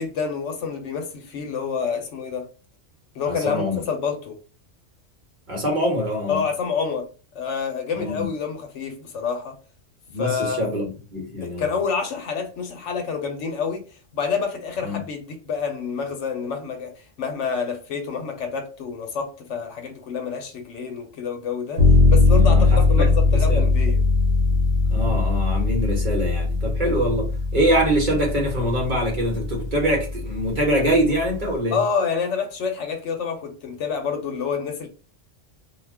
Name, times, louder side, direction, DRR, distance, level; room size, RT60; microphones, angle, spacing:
voice 1, 0.0-2.4 3.1-4.4 6.3-7.1 7.3-9.5 10.2-10.7 11.4-13.8 14.1-16.9 17.2-24.0 31.7-34.9, left 6 dB, 70° left, 0.9 m, -28 dB
voice 2, 3.3-3.8 5.5-6.4 8.0-8.3 10.1-11.7 14.8-15.0 22.4-23.7 24.9-31.8, equal, 45° right, 1.0 m, -24 dB
sound 1, 21.8-31.5, left 3 dB, 65° right, 1.1 m, -20 dB
2.4 x 2.2 x 3.4 m
omnidirectional pair, 1.3 m